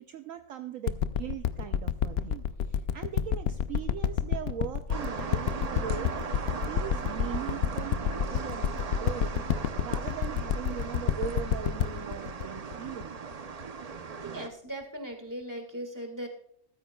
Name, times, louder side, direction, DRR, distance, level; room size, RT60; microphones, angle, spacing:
voice 1, 0.0-13.2, right 9 dB, 70° right, 8 dB, 0.9 m, -40 dB
sound 1, 0.9-13.6 14.2-14.3, left 9 dB, 75° left, 0.6 m, -29 dB
sound 2, 4.9-14.5, right 5 dB, 50° right, 0.4 m, -38 dB
voice 2, 14.2-16.3, right 1 dB, 10° right, 4 dB, 1.7 m, -39 dB
14.0 x 13.0 x 2.2 m, 0.67 s
omnidirectional pair, 1.6 m